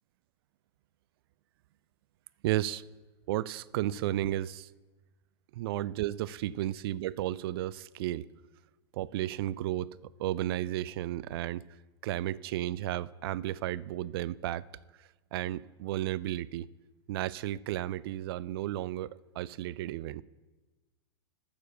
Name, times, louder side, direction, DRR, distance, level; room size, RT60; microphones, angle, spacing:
voice 1, 2.4-2.8 3.3-4.7 5.5-8.3 8.9-11.6 12.0-14.6 15.3-16.7 17.1-20.2, right 14 dB, 60° right, 0.4 m, -33 dB
12.5 x 6.9 x 7.2 m
hypercardioid pair, 115°, 14 cm